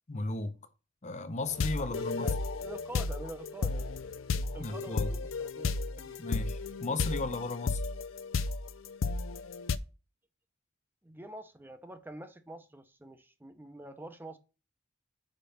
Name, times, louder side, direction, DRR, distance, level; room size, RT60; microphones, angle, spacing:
voice 1, 0.1-0.6 1.0-2.3 4.6-5.1 6.2-7.8, left 2 dB, 35° left, 0.8 m, -35 dB
sound 1, 1.5-9.8, left 4 dB, 80° left, 0.5 m, -33 dB
voice 2, 1.8-3.9 4.5-6.2 11.0-14.4, right 1 dB, 10° right, 0.7 m, -46 dB
5.3 x 5.3 x 5.7 m
head